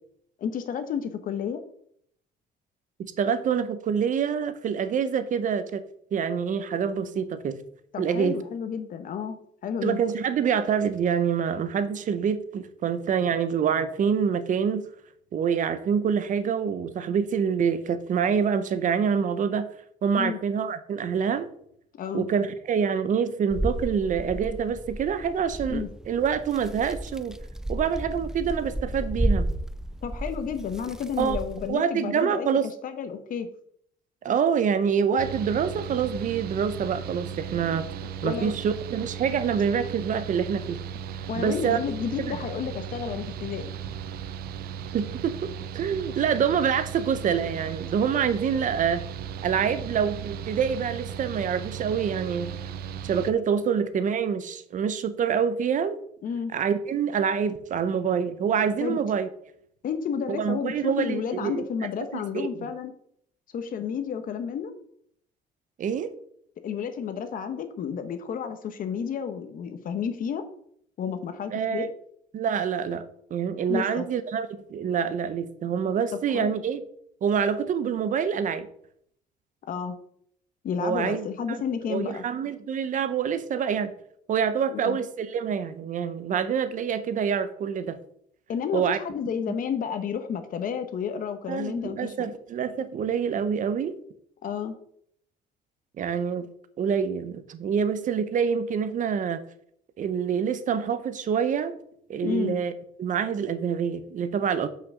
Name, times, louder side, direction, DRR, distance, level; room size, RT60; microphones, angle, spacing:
voice 1, 0.4-1.6 7.9-9.4 9.6-10.0 20.1-20.4 21.9-22.3 25.7-25.9 30.0-32.5 32.8-33.5 38.2-38.5 41.3-43.7 56.2-56.5 58.8-59.0 59.8-62.9 63.5-64.7 66.6-70.4 71.0-71.9 73.7-74.0 76.3-76.5 79.7-80.0 80.6-82.2 84.7-85.0 88.5-92.3 94.4-94.7 102.2-102.6, left 7 dB, 55° left, 9 dB, 1.1 m, -31 dB
voice 2, 3.0-5.8 6.1-7.6 8.0-8.4 9.8-14.8 15.3-19.7 20.0-21.5 22.1-27.4 27.7-29.5 31.2-31.4 31.7-32.7 34.2-37.9 38.2-40.8 41.3-41.8 42.2-42.4 44.9-45.5 45.7-49.0 49.4-52.5 53.0-56.0 56.5-59.3 60.3-61.7 62.1-62.7 65.8-66.1 71.5-71.9 72.3-76.8 77.2-78.7 80.8-81.6 81.9-83.9 84.3-88.0 88.7-89.0 91.5-93.9 96.0-96.5 96.8-99.4 100.0-101.8 102.1-102.7 103.0-104.7, right 7 dB, 50° right, 12 dB, 0.9 m, -26 dB
sound 1, 23.5-31.7, right 1 dB, 5° right, 0.3 m, -32 dB
Mechanical fan, 35.2-53.3, right 8 dB, 65° right, 0.6 m, -36 dB
6.1 x 5.7 x 6.3 m, 0.68 s
cardioid pair, 110°, 17 cm